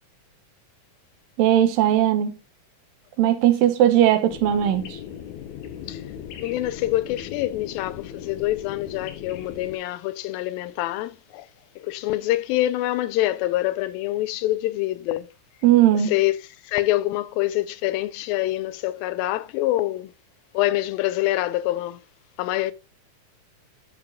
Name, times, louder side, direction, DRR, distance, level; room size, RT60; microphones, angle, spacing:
voice 1, 1.4-2.4 3.2-5.0 15.6-16.2, right 11 dB, 80° right, 2.6 m, -18 dB
sound 1, 4.3-9.8, left 9 dB, 70° left, 2.0 m, -38 dB
voice 2, 6.4-11.5 11.8-15.3 16.1-16.3 16.6-20.1 20.5-22.0 22.4-22.7, left 16 dB, 90° left, 2.4 m, -25 dB
13.5 x 5.3 x 2.3 m
omnidirectional pair, 4.0 m